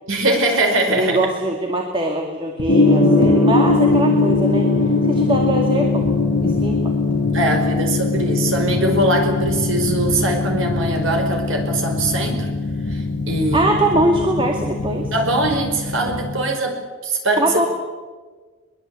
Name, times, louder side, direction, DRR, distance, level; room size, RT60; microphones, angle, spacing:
voice 1, 0.1-1.2 7.3-12.5 12.9-13.7 15.1-17.7, right 1 dB, 60° right, 4 dB, 5.0 m, -21 dB
voice 2, 0.9-6.0 6.4-6.9 13.5-15.1 17.4-17.7, right 1 dB, 25° right, 2 dB, 2.2 m, -22 dB
sound 1, 2.6-2.8 3.0-16.3, left 1 dB, 90° left, 1.7 m, -31 dB
Gong, 2.7-16.4, left 3 dB, 55° left, 7.1 m, -20 dB
22.5 x 21.5 x 8.3 m, 1.4 s
head